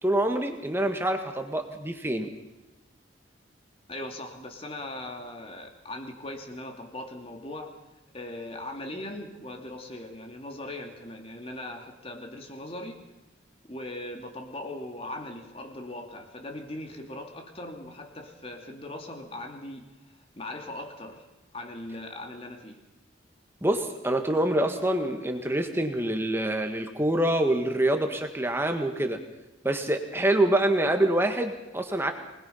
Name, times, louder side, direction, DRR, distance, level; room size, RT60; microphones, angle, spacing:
voice 1, 0.0-2.3 23.6-29.2 29.6-32.1, right 1 dB, 10° right, 5 dB, 1.7 m, -26 dB
voice 2, 3.9-7.8 8.1-13.0 13.6-19.9 20.4-21.3 21.5-22.8, left 1 dB, 30° left, 4 dB, 2.7 m, -39 dB
24.5 x 20.5 x 5.7 m, 1.0 s
head